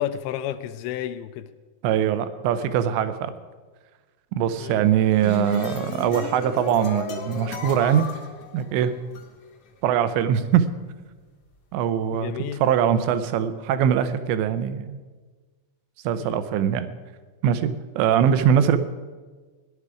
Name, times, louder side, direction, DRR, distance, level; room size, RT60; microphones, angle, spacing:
voice 1, 0.0-1.5 4.6-4.8 12.1-12.6 16.2-16.4, left 11 dB, 85° left, 8 dB, 2.8 m, -31 dB
voice 2, 1.8-3.3 4.3-8.1 8.5-8.9 9.8-10.7 11.7-15.0 16.0-16.9 17.4-18.8, right 9 dB, 80° right, 11 dB, 2.9 m, -22 dB
sound 1, 4.9-9.2, left 3 dB, 70° left, 1.4 m, -33 dB
17.5 x 11.0 x 4.9 m, 1.4 s
omnidirectional pair, 5.4 m